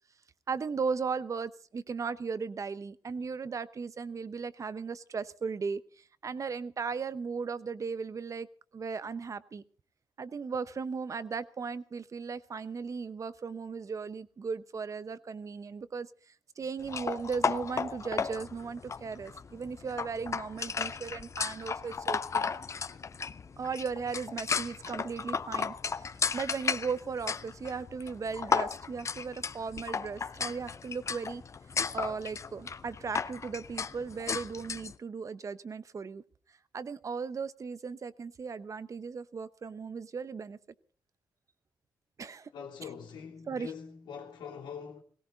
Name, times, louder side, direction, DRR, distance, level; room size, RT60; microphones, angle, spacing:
voice 1, 0.5-8.5 8.7-9.6 10.2-22.5 23.6-31.4 31.9-36.2 36.7-40.6 42.2-42.5 42.8-42.9 43.5-43.7, right 5 dB, 45° right, 0.9 m, -37 dB
sound 1, 16.8-34.9, left 5 dB, 40° left, 0.6 m, -35 dB
voice 2, 42.5-45.0, left 7 dB, 85° left, 3.2 m, -43 dB
18.0 x 17.0 x 4.0 m
cardioid pair, 75°, 8 cm